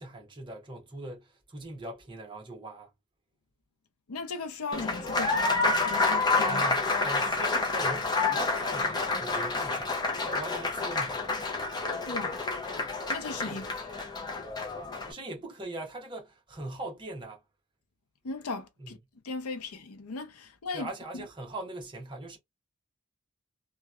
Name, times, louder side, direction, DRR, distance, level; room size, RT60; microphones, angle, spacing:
voice 1, 0.0-2.9 6.5-10.0 10.2-11.4 13.5-13.7 15.1-17.4 18.8-19.0 20.7-22.4, right 2 dB, 20° right, 0.8 m, -41 dB
voice 2, 4.1-6.7 12.1-12.4 13.1-14.0 18.2-19.0 19.2-20.9 21.1-21.2, left 3 dB, 85° left, 0.6 m, -37 dB
Applause, 4.7-15.1, left 3 dB, 20° left, 0.5 m, -29 dB
2.8 x 2.1 x 2.3 m
head